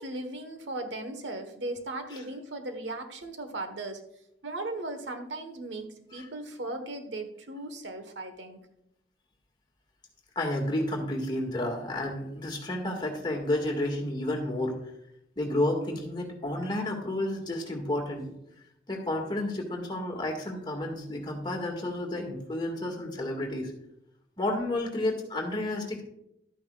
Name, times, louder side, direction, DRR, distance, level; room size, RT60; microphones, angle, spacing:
voice 1, 0.0-4.0 4.4-8.6, right 2 dB, 80° right, 7 dB, 1.2 m, -37 dB
voice 2, 10.3-14.8 15.3-18.4 18.9-23.7 24.4-26.0, left 1 dB, 25° left, 0 dB, 1.8 m, -31 dB
12.5 x 9.1 x 2.3 m, 0.79 s
head